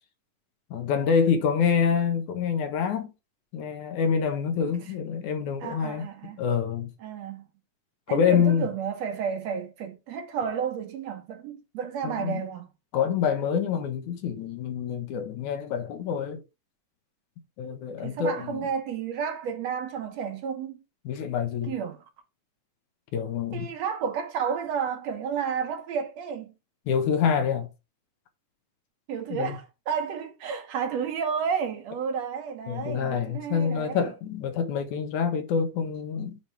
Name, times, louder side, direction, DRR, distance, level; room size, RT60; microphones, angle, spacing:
voice 1, 0.7-3.1 3.5-6.0 6.4-6.9 8.1-8.7 12.0-12.4 12.9-16.4 17.6-18.6 21.1-21.7 23.1-23.7 26.9-27.7 29.3-29.6 32.7-36.4, left 7 dB, 75° left, 2.6 m, -26 dB
voice 2, 5.6-6.4 7.0-7.5 8.1-12.7 18.0-20.8 21.6-22.0 23.5-26.5 29.1-34.1, right 7 dB, 65° right, 2.2 m, -31 dB
8.1 x 3.6 x 4.6 m
omnidirectional pair, 3.4 m